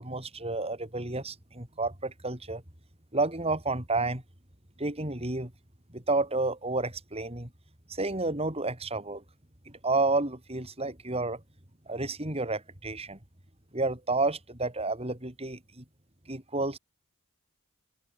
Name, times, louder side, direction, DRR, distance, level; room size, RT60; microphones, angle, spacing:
voice 1, 0.0-2.6 3.1-4.2 4.8-5.5 5.9-7.5 7.9-9.2 9.7-11.4 11.9-13.2 13.7-15.8 16.3-16.8, right 2 dB, 30° right, 4.4 m, -30 dB
head